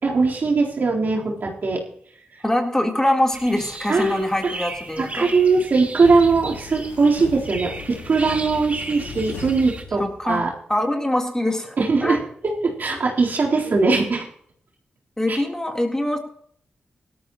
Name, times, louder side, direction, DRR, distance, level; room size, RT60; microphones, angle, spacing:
voice 1, 0.0-1.8 3.9-4.3 5.0-10.5 11.8-14.3, right 4 dB, 60° right, -3 dB, 3.8 m, -20 dB
voice 2, 2.4-5.3 10.0-10.4 10.7-11.8 12.0-12.2 15.2-16.2, left 1 dB, 15° left, 1 dB, 3.6 m, -23 dB
sound 1, 3.3-9.8, right 2 dB, 40° right, 2.3 m, -36 dB
sound 2, 6.0-10.5, left 4 dB, 90° left, 1.8 m, -37 dB
18.0 x 13.0 x 3.1 m, 0.62 s
supercardioid pair, 40°, 4 cm